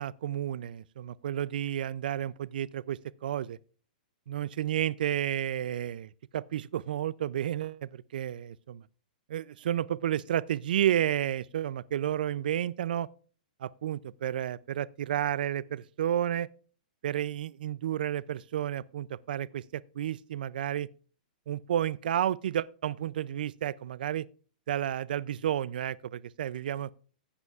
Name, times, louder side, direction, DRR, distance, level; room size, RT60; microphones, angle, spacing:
voice 1, 0.0-3.6 4.3-8.8 9.3-13.1 13.6-16.5 17.0-20.9 21.5-24.3 24.7-26.9, right 11 dB, 70° right, 0.4 m, -31 dB
15.0 x 8.0 x 2.4 m
hypercardioid pair, 135°, 5 cm